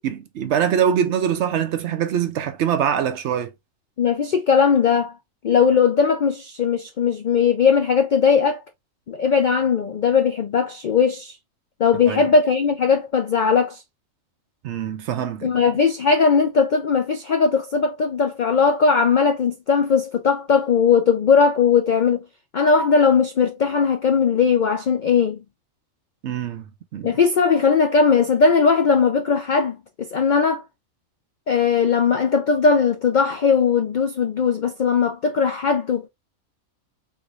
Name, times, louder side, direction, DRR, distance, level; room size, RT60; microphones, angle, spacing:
voice 1, 0.0-3.5 12.1-12.2 14.6-15.5 26.2-27.2, right 8 dB, 65° right, 0.8 m, -23 dB
voice 2, 4.0-5.1 5.4-8.6 9.1-11.4 11.8-13.8 15.4-22.2 22.5-25.4 27.0-30.6 31.5-36.1, left 5 dB, 70° left, 0.4 m, -19 dB
3.6 x 3.2 x 2.4 m
omnidirectional pair, 1.4 m